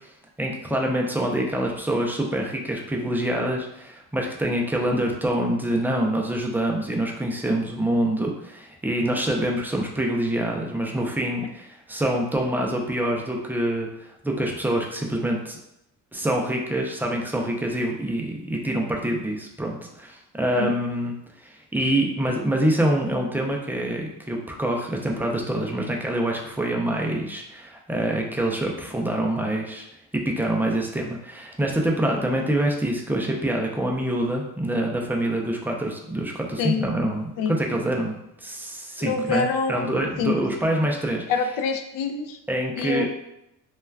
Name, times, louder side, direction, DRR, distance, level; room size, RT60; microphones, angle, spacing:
voice 1, 0.4-15.6 16.1-21.1 21.4-29.9 30.1-41.2 42.5-43.1, right 1 dB, 5° right, 0 dB, 0.3 m, -26 dB
voice 2, 39.0-39.9 40.2-40.3 41.3-42.4 42.8-43.1, left 5 dB, 80° left, 6 dB, 0.5 m, -25 dB
2.3 x 2.2 x 3.2 m, 0.84 s
cardioid pair, 120°, 32 cm